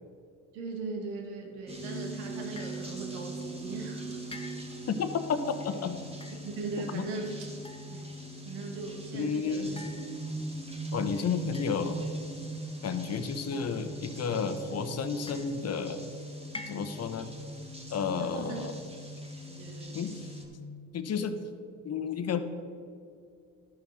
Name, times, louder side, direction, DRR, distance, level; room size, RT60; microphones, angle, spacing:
voice 1, 0.5-4.0 6.4-7.5 7.9-8.1 8.5-9.8 11.1-11.3 18.2-18.6 19.5-20.2, right 3 dB, 85° right, 2 dB, 1.7 m, -39 dB
sound 1, 1.7-20.4, right 1 dB, 15° right, 1.9 m, -41 dB
sound 2, 2.6-2.9 4.3-4.9 6.1-6.4 7.6-8.2 9.8-10.5 11.5-12.1 13.5-14.1 15.3-15.8 16.5-17.2, left 2 dB, 15° left, 1.0 m, -47 dB
voice 2, 4.9-5.4 5.6-6.0 6.8-7.0 9.1-9.8 10.9-12.1 12.8-16.1 16.7-17.3 17.9-18.7 19.9-20.3 20.9-21.4 21.8-22.4, left 6 dB, 45° left, 9 dB, 1.0 m, -32 dB
12.0 x 5.4 x 6.3 m, 2.4 s
supercardioid pair, 70°, 35 cm